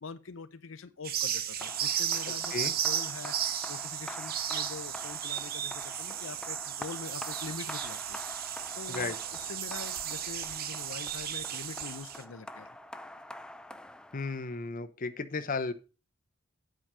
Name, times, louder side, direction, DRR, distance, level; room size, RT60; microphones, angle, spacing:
voice 1, 0.0-12.8, left 4 dB, 75° left, 11 dB, 0.7 m, -44 dB
sound 1, 1.0-12.2, right 10 dB, 50° right, 0.8 m, -34 dB
sound 2, 1.6-14.6, left 1 dB, 5° left, 0.4 m, -46 dB
voice 2, 14.1-15.7, left 4 dB, 45° left, 10 dB, 0.8 m, -34 dB
8.9 x 5.1 x 6.1 m, 0.33 s
head